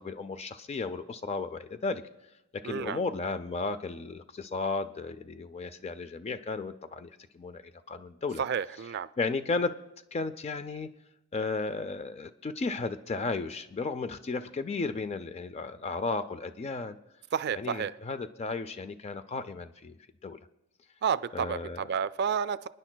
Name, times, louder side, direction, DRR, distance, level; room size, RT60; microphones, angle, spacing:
voice 1, 0.0-2.0 2.5-7.6 7.9-8.4 9.2-9.8 10.1-10.9 11.3-17.0 17.6-20.0 20.2-20.4 21.3-21.8, left 3 dB, 30° left, 11 dB, 0.4 m, -34 dB
voice 2, 2.6-3.0 8.4-9.1 17.3-17.9 21.0-22.7, right 7 dB, 50° right, 15 dB, 0.3 m, -30 dB
28.0 x 9.8 x 2.2 m, 0.89 s
head